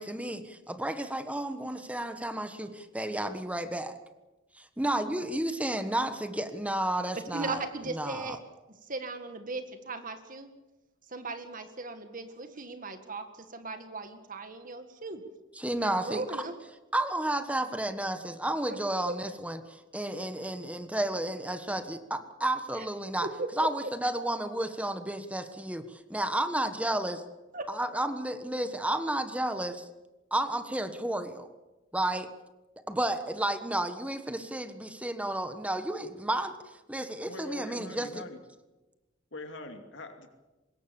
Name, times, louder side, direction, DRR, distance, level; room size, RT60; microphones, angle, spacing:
voice 1, 0.0-3.9 4.6-7.6 7.9-8.3 15.6-16.2 16.9-23.3 23.6-27.2 27.7-29.9 30.3-31.5 31.9-32.3 32.9-36.6 36.9-38.1, right 1 dB, 5° right, 9 dB, 1.4 m, -32 dB
voice 2, 7.3-8.4 8.8-10.5 11.1-15.2 15.8-16.6 19.1-19.2 22.8-22.9 23.2-23.7 27.5-27.7, right 3 dB, 45° right, 7 dB, 1.9 m, -37 dB
voice 3, 37.3-38.4 39.3-40.3, left 2 dB, 65° left, 5 dB, 2.6 m, -43 dB
25.0 x 21.0 x 7.2 m, 1.1 s
head